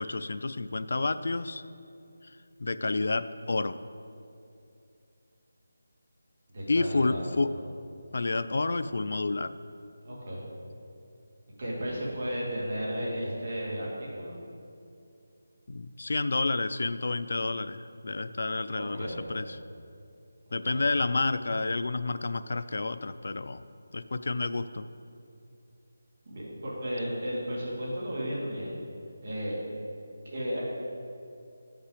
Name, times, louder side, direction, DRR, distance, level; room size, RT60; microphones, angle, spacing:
voice 1, 0.0-1.6 2.2-3.8 6.7-7.6 8.1-9.5 15.7-19.6 20.5-23.6 23.9-24.9, left 3 dB, 55° left, 12 dB, 0.3 m, -30 dB
voice 2, 6.5-7.2 7.5-7.6 10.0-10.5 11.6-14.4 18.7-19.3 20.7-20.8 26.3-28.8 29.2-29.6 30.2-30.6, equal, 40° right, -5 dB, 2.2 m, -34 dB
9.4 x 5.7 x 5.0 m, 2.6 s
figure-of-eight pair, 175°, 0 cm